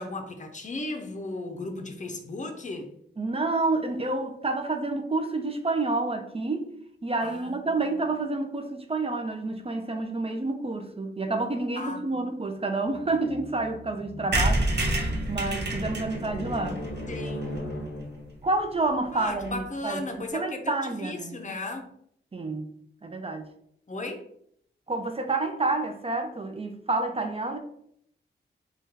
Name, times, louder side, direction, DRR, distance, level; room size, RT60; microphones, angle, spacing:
voice 1, 0.0-2.9 7.2-7.6 11.8-12.3 17.1-17.5 19.1-21.9 23.9-24.3, left 2 dB, 40° left, 0.6 m, -36 dB
voice 2, 3.2-6.7 7.0-14.8 15.3-16.8 18.4-20.1 20.3-21.4 22.3-22.7 23.0-23.5 24.9-27.6, right 2 dB, 30° right, 0.5 m, -29 dB
sound 1, 12.9-18.4, left 1 dB, 85° left, 0.6 m, -37 dB
sound 2, 14.3-18.0 18.4-18.5 18.7-18.8 19.0-19.1 19.3-19.6, right 1 dB, 60° right, 0.7 m, -29 dB
3.5 x 2.3 x 2.7 m
cardioid pair, 50°, 19 cm